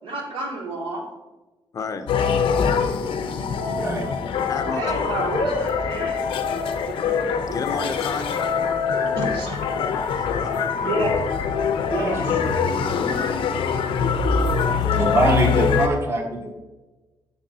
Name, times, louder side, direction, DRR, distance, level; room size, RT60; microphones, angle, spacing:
voice 1, 0.0-1.1 4.7-6.2 7.2-7.3 9.2-9.6 10.8-11.2 11.9-12.4, right 1 dB, 80° right, -1 dB, 2.3 m, -28 dB
voice 2, 1.7-2.1 4.5-5.0 7.0-8.4 8.9-9.4 9.9-11.1 14.6-15.1, left 5 dB, 40° left, 9 dB, 0.6 m, -34 dB
sound 1, 2.1-15.9, left 6 dB, 85° left, 0.7 m, -23 dB
voice 3, 14.8-16.5, right 1 dB, 30° right, 2 dB, 1.2 m, -23 dB
10.0 x 6.9 x 2.8 m, 1.1 s
wide cardioid pair, 165°, 9 cm